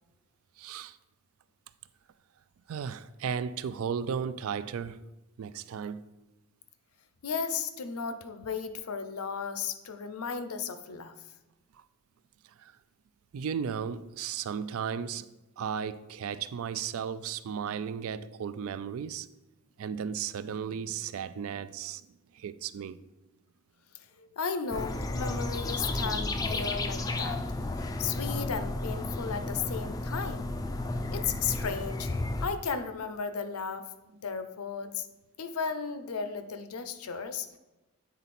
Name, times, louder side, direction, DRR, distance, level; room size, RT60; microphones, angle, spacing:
voice 1, 0.6-1.0 2.7-5.0 5.4-6.0 11.7-11.8 12.6-12.7 13.3-15.3 15.6-19.3 19.8-22.1 22.3-23.0, right 7 dB, 75° right, 0.3 m, -35 dB
voice 2, 7.2-11.1 24.2-27.4 27.8-30.5 31.1-32.1 32.4-33.9 34.2-35.1 35.4-37.6, left 6 dB, 85° left, 0.6 m, -35 dB
sound 1, 24.7-32.5, left 2 dB, 15° left, 0.3 m, -33 dB
8.3 x 3.9 x 4.2 m
head